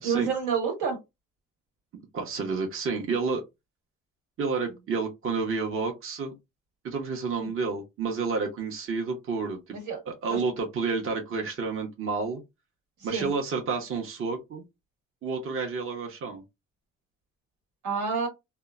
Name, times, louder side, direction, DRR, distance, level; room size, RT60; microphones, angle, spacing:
voice 1, 0.0-1.0 7.4-7.5 9.7-10.0 10.3-10.4 13.0-13.3 17.8-18.3, right 6 dB, 90° right, 1.5 m, -28 dB
voice 2, 2.1-3.4 4.4-6.3 6.8-9.8 10.1-12.4 13.0-14.6 15.2-16.4, right 4 dB, 45° right, 0.8 m, -30 dB
2.8 x 2.1 x 2.3 m
cardioid pair, 90°, 30 cm